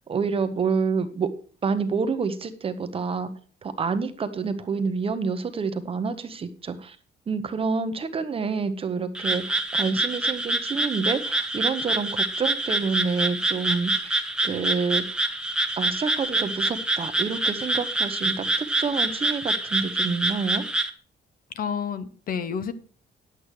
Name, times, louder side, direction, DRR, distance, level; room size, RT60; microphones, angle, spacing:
voice 1, 0.1-1.3 1.6-3.3 3.6-7.0 7.3-15.3 15.8-20.6, right 5 dB, 30° right, 10 dB, 0.9 m, -28 dB
Frog, 9.1-20.9, right 2 dB, 5° right, 0.9 m, -26 dB
voice 2, 21.5-22.7, left 7 dB, 50° left, 12 dB, 1.0 m, -29 dB
10.5 x 8.4 x 4.7 m, 0.41 s
cardioid pair, 180°, 18 cm